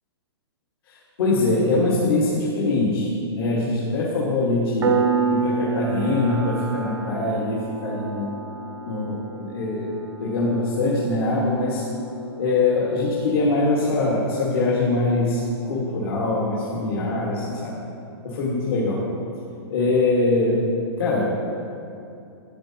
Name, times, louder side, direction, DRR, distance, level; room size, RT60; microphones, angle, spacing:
voice 1, 0.9-5.0 5.3-8.3 8.8-11.8 12.4-17.8 18.2-19.0 19.7-20.7 21.0-21.3, left 2 dB, 60° left, -5 dB, 1.5 m, -23 dB
Piano, 4.8-15.2, right 5 dB, 85° right, 0.8 m, -30 dB
12.0 x 8.2 x 2.8 m, 2.7 s
hypercardioid pair, 165°, 14 cm